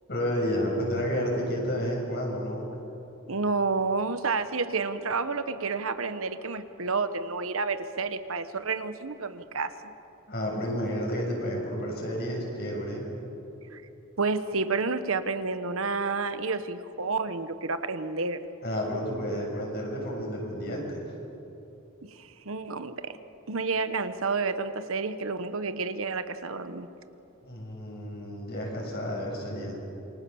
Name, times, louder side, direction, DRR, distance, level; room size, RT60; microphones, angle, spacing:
voice 1, 0.1-2.8 10.3-13.0 18.6-21.0 27.4-29.8, equal, 50° left, -1 dB, 7.1 m, -31 dB
voice 2, 3.3-9.7 13.7-13.8 14.2-18.4 22.1-23.2 23.5-26.9, right 4 dB, 75° right, 11 dB, 1.2 m, -30 dB
28.0 x 24.5 x 7.1 m, 2.9 s
head